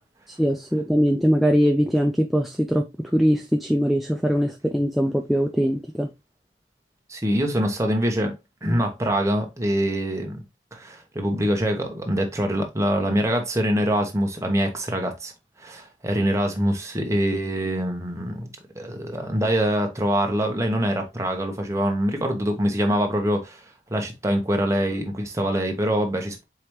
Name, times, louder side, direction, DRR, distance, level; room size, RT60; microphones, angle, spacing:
voice 1, 0.3-2.9 3.1-6.1, equal, ahead, 0.3 m, -21 dB
voice 2, 7.1-8.4 8.6-10.4 10.7-15.3 15.6-23.6 23.9-26.4, equal, 15° right, 0.9 m, -24 dB
4.7 x 3.3 x 3.0 m
head